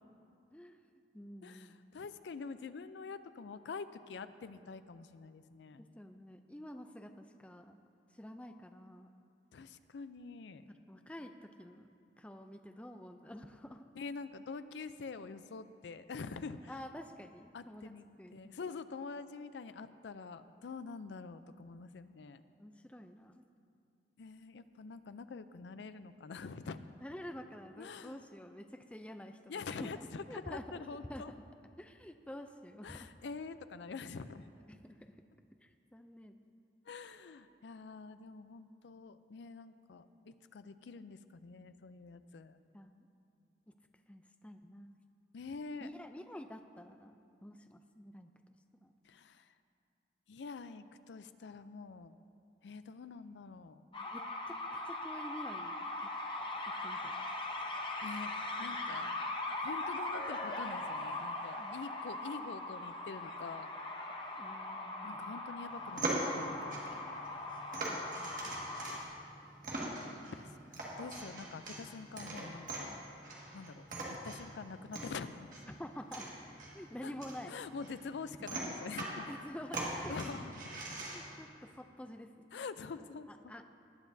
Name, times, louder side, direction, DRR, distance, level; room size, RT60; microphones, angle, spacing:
voice 1, 0.5-1.8 5.8-7.7 8.1-9.1 10.7-13.9 16.7-17.9 18.2-18.5 22.6-23.5 27.0-29.5 29.8-30.6 31.1-31.2 31.8-33.1 34.7-35.0 35.6-36.3 42.7-43.1 43.7-43.8 44.1-45.0 45.8-48.3 48.8-48.9 54.0-56.1 56.7-57.2 59.0-59.3 61.6-61.7 62.3-62.4 64.4-65.4 67.9-68.9 75.8-76.3 76.7-77.6 78.4-78.6 79.3-80.1 81.1-82.5 83.0-83.6, left 1 dB, 5° left, 7 dB, 0.4 m, -49 dB
voice 2, 1.4-5.8 9.5-10.6 14.0-16.7 17.5-22.4 24.2-26.9 27.8-28.2 29.5-31.3 32.8-34.5 36.9-42.6 45.3-45.9 49.0-49.5 50.3-52.2 52.6-53.8 58.0-59.1 59.6-63.7 65.0-67.2 70.3-72.9 73.5-75.5 77.0-77.1 77.5-79.3 80.1-81.0 82.5-83.5, left 4 dB, 85° left, 12 dB, 0.4 m, -46 dB
sound 1, 53.9-69.0, left 2 dB, 30° left, 0.8 m, -40 dB
sound 2, 65.7-81.4, right 1 dB, 45° right, 1.8 m, -42 dB
19.0 x 9.3 x 2.7 m, 2.5 s
head